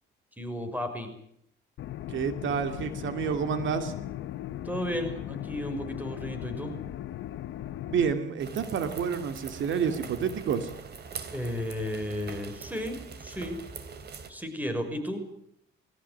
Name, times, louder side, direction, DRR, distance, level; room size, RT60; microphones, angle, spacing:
voice 1, 0.4-1.1 4.6-6.7 11.3-13.6 14.3-15.2, equal, 10° right, 7 dB, 6.0 m, -33 dB
pc vent muffled, 1.8-8.1, left 13 dB, 75° left, 0.9 m, -38 dB
voice 2, 2.1-3.9 7.9-10.7, right 7 dB, 75° right, 8 dB, 2.7 m, -29 dB
sound 1, 8.4-14.3, right 5 dB, 55° right, 3.4 m, -42 dB
21.0 x 18.0 x 9.7 m, 0.71 s
cardioid pair, 90°, 20 cm